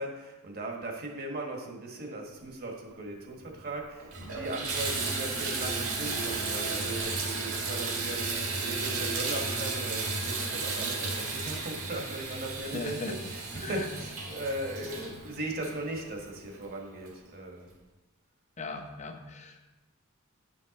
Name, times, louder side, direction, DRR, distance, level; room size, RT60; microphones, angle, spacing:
voice 1, 0.0-17.7, right 1 dB, 45° right, 1 dB, 1.4 m, -38 dB
Water tap faucet / Bathtub (filling or washing), 3.4-3.5 4.0-16.4 17.1-17.2 17.7-17.8, right 3 dB, 70° right, 1.9 m, -33 dB
voice 2, 12.7-13.1 13.6-13.9 15.0-15.2 18.6-19.7, left 3 dB, 35° left, 5 dB, 0.8 m, -39 dB
9.3 x 5.4 x 4.1 m, 1.1 s
head